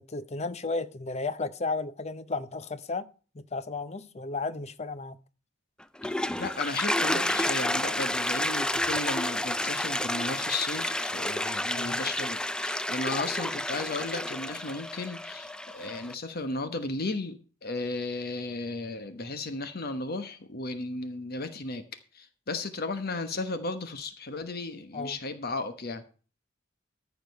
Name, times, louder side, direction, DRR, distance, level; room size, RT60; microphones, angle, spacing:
voice 1, 0.0-3.1 3.3-5.2 11.8-12.0 24.9-25.2, left 3 dB, 35° left, 0.7 m, -34 dB
Toilet flush, 5.8-16.1, left 1 dB, 5° left, 0.4 m, -30 dB
voice 2, 6.4-21.8 22.1-26.0, left 3 dB, 55° left, 1.1 m, -35 dB
14.0 x 5.1 x 6.4 m
head